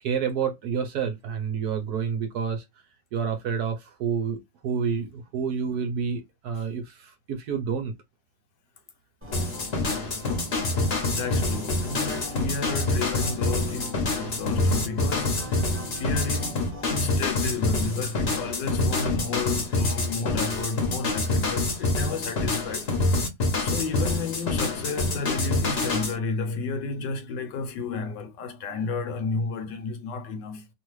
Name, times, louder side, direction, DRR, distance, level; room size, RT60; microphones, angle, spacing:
voice 1, 0.0-2.6 3.1-7.9 9.9-10.0 10.8-11.0 21.2-21.6 28.7-28.8, right 6 dB, 70° right, 1.0 m, -29 dB
sound 1, 9.2-17.1, equal, 10° right, 0.8 m, -41 dB
sound 2, 9.3-26.2, left 2 dB, 45° left, 0.9 m, -26 dB
voice 2, 11.0-15.6 15.9-22.9 23.6-30.7, left 4 dB, 75° left, 1.4 m, -32 dB
3.1 x 2.4 x 3.0 m
omnidirectional pair, 2.0 m